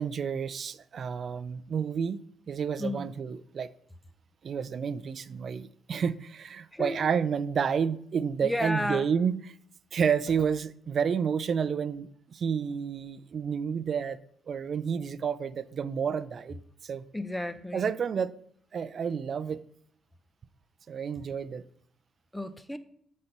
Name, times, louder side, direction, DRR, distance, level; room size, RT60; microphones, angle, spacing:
voice 1, 0.0-2.2 2.5-3.7 4.4-9.5 9.9-14.2 14.5-17.0 17.7-18.3 18.7-19.6 20.9-21.6, right 7 dB, 50° right, 0.5 m, -30 dB
voice 2, 6.7-7.1 8.4-9.0 17.1-17.9 22.3-22.8, left 1 dB, 10° left, 0.7 m, -32 dB
7.9 x 4.3 x 6.7 m
cardioid pair, 90°, 0 cm